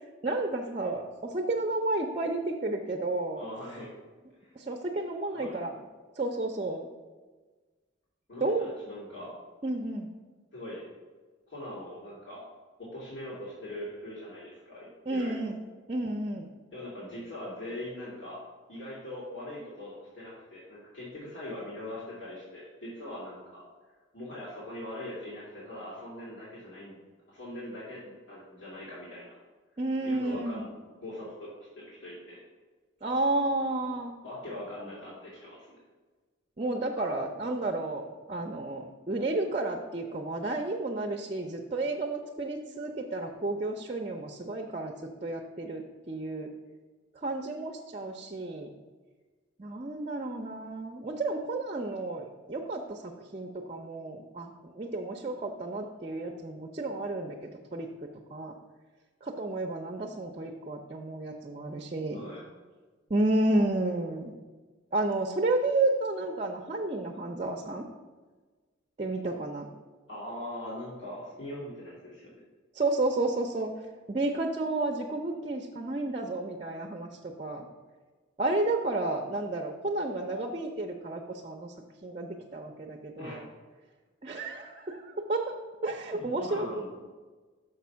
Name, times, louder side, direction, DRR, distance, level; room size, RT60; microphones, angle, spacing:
voice 1, 0.2-3.4 4.6-5.8 6.2-6.9 8.4-8.7 9.6-10.1 15.1-15.6 15.9-16.5 29.8-30.6 33.0-34.1 36.6-44.9 45.2-46.5 47.2-48.7 49.6-57.4 57.7-57.9 58.3-58.5 59.2-62.2 63.1-64.3 64.9-67.8 69.0-69.7 72.7-73.7 74.1-77.7 78.4-81.7 82.0-83.5 84.2-85.5 85.8-86.7, right 2 dB, 35° right, 3 dB, 0.5 m, -31 dB
voice 2, 3.3-4.0 4.4-4.5 5.3-5.6 8.3-9.3 10.5-10.8 11.5-12.4 12.8-15.5 16.7-18.4 18.7-23.6 24.1-26.9 27.3-29.4 30.0-30.7 31.0-32.4 34.2-35.7 62.1-62.4 70.1-72.4 83.2-83.5 86.1-86.9, left 1 dB, 75° left, -8 dB, 2.3 m, -41 dB
6.6 x 5.2 x 5.7 m, 1.3 s
head